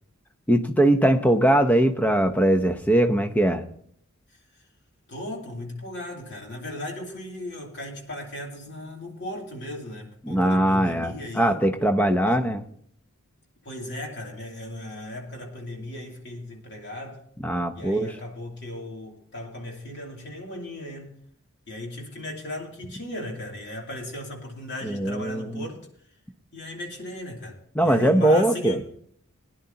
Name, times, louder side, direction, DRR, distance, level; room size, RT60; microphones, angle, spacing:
voice 1, 0.5-3.6 10.2-12.6 17.4-18.1 24.8-25.6 27.8-28.8, right 1 dB, 5° left, 7 dB, 0.7 m, -21 dB
voice 2, 5.1-11.6 12.3-12.4 13.6-17.2 17.7-21.2 21.7-25.9 26.5-28.8, left 1 dB, 55° left, 0 dB, 2.8 m, -36 dB
20.5 x 10.5 x 2.8 m, 0.64 s
head